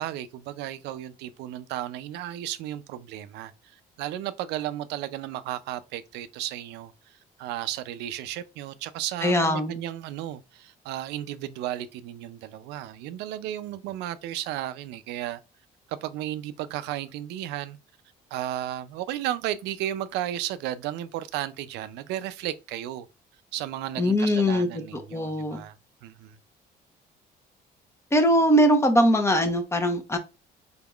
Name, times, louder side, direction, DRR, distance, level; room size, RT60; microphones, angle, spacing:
voice 1, 0.0-3.5 4.0-6.9 7.4-15.4 15.9-17.8 18.3-23.1 23.5-25.8 26.0-26.4, right 12 dB, 90° right, 0.4 m, -34 dB
voice 2, 9.2-9.8 24.0-24.7 24.9-25.6 28.1-30.2, equal, 15° left, 0.8 m, -21 dB
4.1 x 3.5 x 2.3 m
cardioid pair, 110°, 17 cm